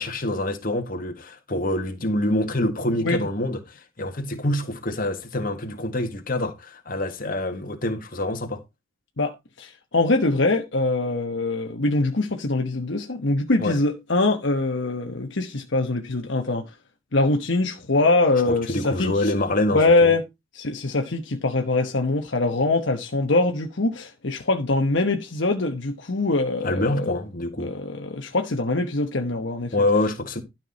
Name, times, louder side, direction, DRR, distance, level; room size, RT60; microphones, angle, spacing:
voice 1, 0.0-8.6 13.6-13.8 18.5-20.1 26.6-27.7 29.7-30.4, left 1 dB, 45° left, 1.8 m, -26 dB
voice 2, 9.2-16.8 17.1-19.3 19.7-20.2 20.5-27.2 27.6-29.7, left 2 dB, 65° left, 1.1 m, -23 dB
12.5 x 6.0 x 4.2 m
head